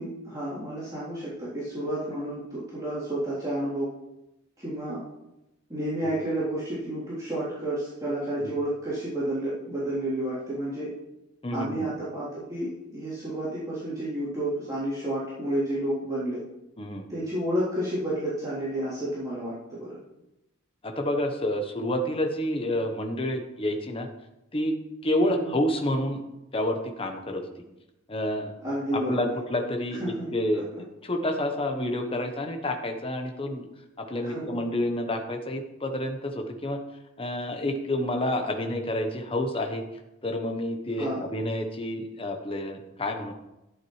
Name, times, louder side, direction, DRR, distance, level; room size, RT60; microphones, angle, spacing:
voice 1, 0.0-3.9 4.6-5.0 5.7-10.9 11.5-16.4 17.1-20.0 25.2-25.6 28.6-29.3 30.0-30.3 34.2-34.6 41.0-41.3, right 1 dB, 20° right, -12 dB, 3.4 m, -31 dB
voice 2, 11.4-11.9 16.8-17.1 20.8-24.1 24.5-24.7 25.0-26.2 26.5-27.4 28.1-28.5 28.9-33.7 34.0-36.8 37.2-39.8 40.2-43.3, left 1 dB, 25° left, 4 dB, 1.1 m, -29 dB
14.0 x 9.1 x 3.3 m, 0.93 s
head